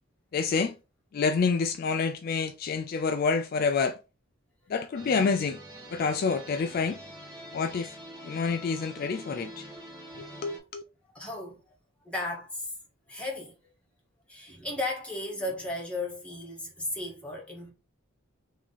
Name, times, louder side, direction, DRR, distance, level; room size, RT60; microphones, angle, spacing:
voice 1, 0.3-0.7 1.1-4.0 4.7-5.6 5.9-7.0 7.5-8.0 8.2-9.7 10.2-10.8, left 5 dB, 45° left, 0.3 m, -28 dB
sound 1, 5.0-10.6, right 1 dB, 20° right, 1.7 m, -45 dB
voice 2, 11.1-11.6 12.0-12.7 13.1-13.7 14.3-17.7, left 2 dB, 5° left, 1.6 m, -35 dB
3.6 x 3.2 x 4.0 m
head